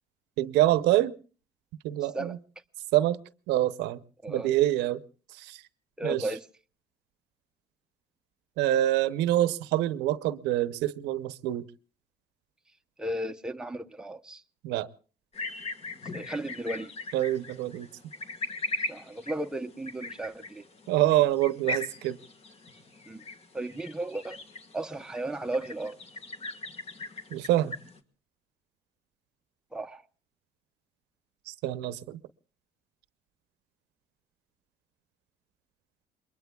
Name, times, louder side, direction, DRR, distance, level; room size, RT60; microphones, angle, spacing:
voice 1, 0.4-1.1 1.8-2.4 2.9-3.2 3.5-4.0 4.3-5.0 5.4-5.6 6.0-6.2 8.6-11.6 14.6-14.9 17.1-17.9 20.9-22.2 27.3-27.8 31.5-32.2, right 14 dB, 90° right, 0.7 m, -26 dB
voice 2, 6.0-6.5 13.0-14.4 16.1-16.9 18.9-20.7 23.1-23.2 23.5-24.4 24.7-26.0 29.7-30.0, right 1 dB, 5° right, 0.7 m, -34 dB
sound 1, 15.3-28.0, left 2 dB, 40° left, 1.5 m, -40 dB
28.0 x 22.5 x 2.3 m
cardioid pair, 110°, 17 cm